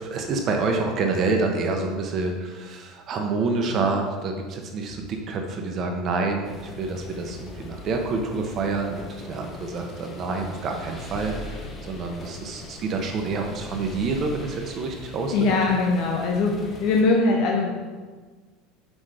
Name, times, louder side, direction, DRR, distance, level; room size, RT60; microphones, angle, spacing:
voice 1, 0.0-15.6, right 3 dB, 45° right, 3 dB, 1.0 m, -27 dB
sound 1, 6.4-17.0, left 2 dB, 30° left, 1.4 m, -41 dB
voice 2, 15.3-17.7, left 3 dB, 60° left, 0 dB, 0.9 m, -21 dB
5.8 x 5.1 x 5.0 m, 1.4 s
hypercardioid pair, 85°, 0 cm